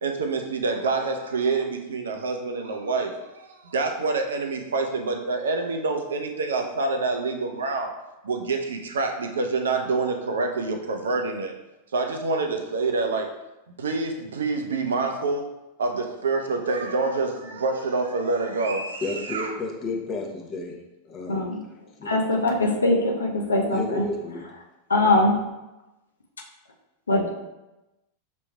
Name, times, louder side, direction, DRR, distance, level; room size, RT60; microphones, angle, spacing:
voice 1, 0.0-7.9 8.2-11.5 11.9-13.3 13.8-15.5 15.8-19.5, right 3 dB, 65° right, 0.5 m, -27 dB
voice 2, 19.0-20.7 21.0-21.4 22.0-22.1 23.7-24.4, left 2 dB, 30° left, 0.8 m, -31 dB
voice 3, 21.3-21.6 22.0-24.1 24.4-24.5 24.9-25.4 27.1-27.3, left 2 dB, 75° left, 0.6 m, -22 dB
6.0 x 3.0 x 2.3 m
figure-of-eight pair, 90°, 0 cm